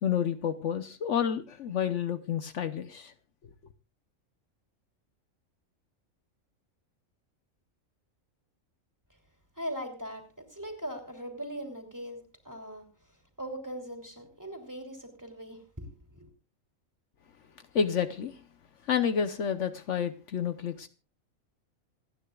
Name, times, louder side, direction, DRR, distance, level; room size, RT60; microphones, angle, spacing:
voice 1, 0.0-3.1 17.7-18.4 18.8-20.9, left 7 dB, 65° left, 1.2 m, -29 dB
voice 2, 9.6-12.2 12.4-12.9 13.4-16.3, equal, 15° right, 3.2 m, -40 dB
27.5 x 9.9 x 2.4 m
omnidirectional pair, 1.3 m